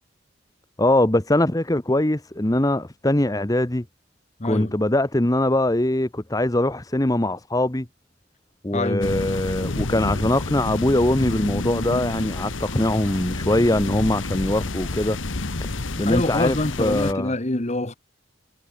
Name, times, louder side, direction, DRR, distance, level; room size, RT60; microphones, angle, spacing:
voice 1, 0.8-3.8 4.4-7.9 8.6-15.2 16.0-17.3, left 1 dB, 20° left, 1.1 m, -22 dB
voice 2, 4.4-4.7 8.7-9.1 15.9-17.9, left 2 dB, 35° left, 1.6 m, -25 dB
sound 1, 9.0-17.1, left 2 dB, 85° left, 1.5 m, -29 dB
head